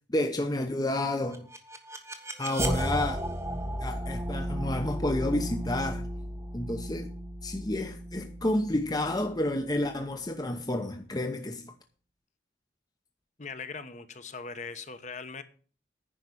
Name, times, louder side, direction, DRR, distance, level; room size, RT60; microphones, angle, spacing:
voice 1, 0.1-1.5 2.4-3.3 3.8-6.1 6.5-7.1 7.4-11.7, left 1 dB, 20° left, 0.8 m, -30 dB
sound 1, 1.1-10.1, right 1 dB, 15° right, 1.5 m, -34 dB
voice 2, 13.4-15.4, left 4 dB, 45° left, 1.1 m, -40 dB
10.0 x 5.8 x 8.5 m
head